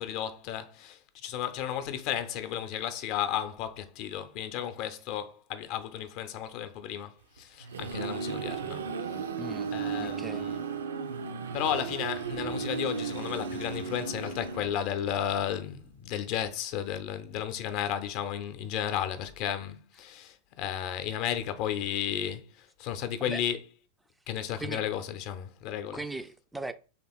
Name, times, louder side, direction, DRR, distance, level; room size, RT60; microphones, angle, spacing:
voice 1, 0.0-8.9 9.7-10.6 11.5-23.6 24.3-26.0, left 10 dB, 45° left, 0.6 m, -33 dB
sound 1, 7.4-15.1, right 6 dB, 65° right, 0.5 m, -35 dB
voice 2, 9.4-9.7 10.0-10.5 23.3-23.4 24.6-24.8 25.9-26.7, right 2 dB, 5° right, 0.4 m, -38 dB
3.4 x 2.9 x 4.3 m
figure-of-eight pair, 90°, 0 cm